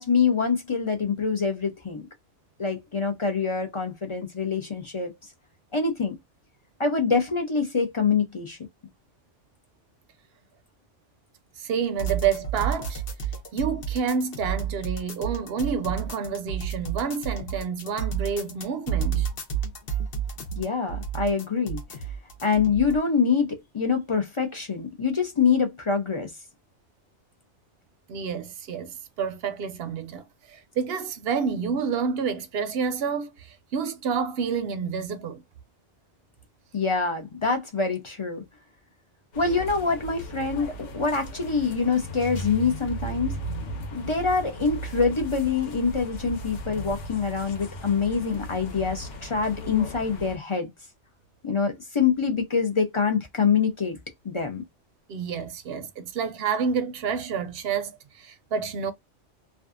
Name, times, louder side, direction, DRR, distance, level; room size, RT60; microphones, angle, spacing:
voice 1, 0.0-2.0 2.6-5.1 5.7-6.1 6.8-8.6 20.5-21.8 22.4-26.3 36.7-38.4 39.4-43.4 43.9-50.7 51.4-54.0 54.2-54.6, left 5 dB, 40° left, 0.4 m, -25 dB
voice 2, 11.6-13.0 13.5-19.3 28.1-35.4 55.1-58.9, right 6 dB, 65° right, 0.7 m, -29 dB
sound 1, 12.0-23.0, right 7 dB, 55° left, 0.9 m, -31 dB
sound 2, 39.3-50.4, right 1 dB, 75° left, 1.1 m, -36 dB
2.5 x 2.3 x 2.3 m
omnidirectional pair, 1.2 m